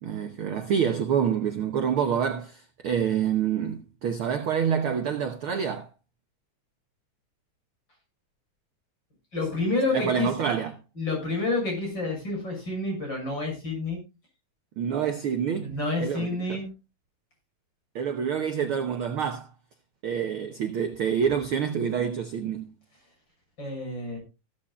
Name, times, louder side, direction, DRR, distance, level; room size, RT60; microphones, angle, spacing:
voice 1, 0.0-5.9 9.9-10.7 14.8-15.7 16.0-16.3 17.9-19.5 20.0-22.7, right 7 dB, 60° right, 1.5 m, -27 dB
voice 2, 9.3-10.3 11.0-14.0 15.6-16.7 23.6-24.2, left 2 dB, 35° left, 7.1 m, -29 dB
15.5 x 13.0 x 2.4 m
omnidirectional pair, 3.5 m